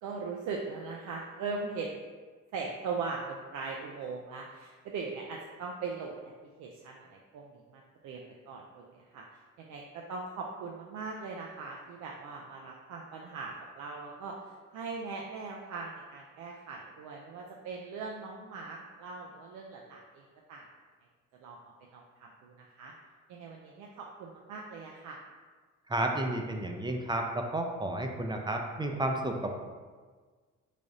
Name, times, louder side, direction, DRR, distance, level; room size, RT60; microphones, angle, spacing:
voice 1, 0.0-2.0 2.5-6.2 6.6-9.2 9.6-14.4 14.7-20.7 21.4-22.9 23.3-25.2, right 4 dB, 75° right, -1 dB, 0.5 m, -40 dB
voice 2, 25.9-29.5, right 1 dB, 15° right, 2 dB, 0.4 m, -32 dB
3.6 x 3.4 x 2.6 m, 1.5 s
cardioid pair, 90°, 30 cm